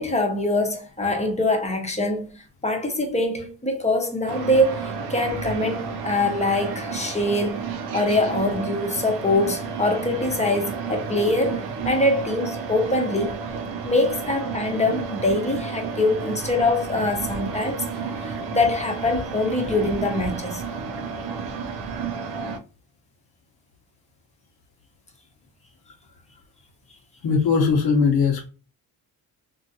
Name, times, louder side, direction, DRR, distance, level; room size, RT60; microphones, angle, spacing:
voice 1, 0.0-2.3 2.6-7.7 7.9-13.4 13.8-17.8 18.2-20.6, left 2 dB, 20° left, 0.8 m, -23 dB
sound 1, 4.3-22.6, right 5 dB, 90° right, 0.7 m, -32 dB
voice 2, 27.2-28.5, left 5 dB, 80° left, 0.9 m, -19 dB
3.0 x 2.6 x 2.6 m
cardioid pair, 95°, 38 cm